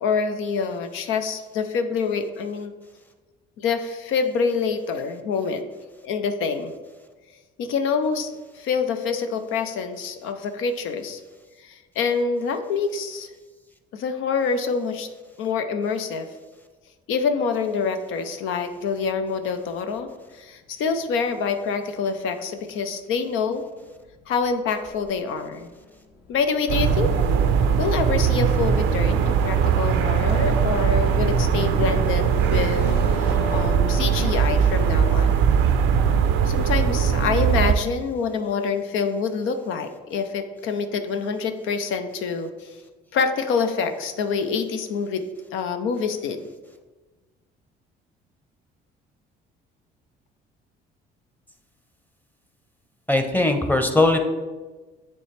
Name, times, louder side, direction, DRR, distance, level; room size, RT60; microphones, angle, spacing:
voice 1, 0.0-2.7 3.6-5.7 6.0-6.7 7.6-11.2 11.6-13.3 13.9-15.1 15.4-16.3 17.1-20.1 20.3-23.6 24.3-25.7 26.3-27.1 27.8-35.3 36.4-42.7 43.1-46.4, left 5 dB, 70° left, 7 dB, 0.6 m, -26 dB
sound 1, 17.7-33.7, left 2 dB, 55° left, 1.3 m, -44 dB
sound 2, 26.7-37.8, right 7 dB, 80° right, 0.5 m, -20 dB
voice 2, 53.1-54.2, left 2 dB, 10° left, 6 dB, 0.8 m, -19 dB
9.4 x 3.3 x 3.3 m, 1.3 s
supercardioid pair, 75°, 21 cm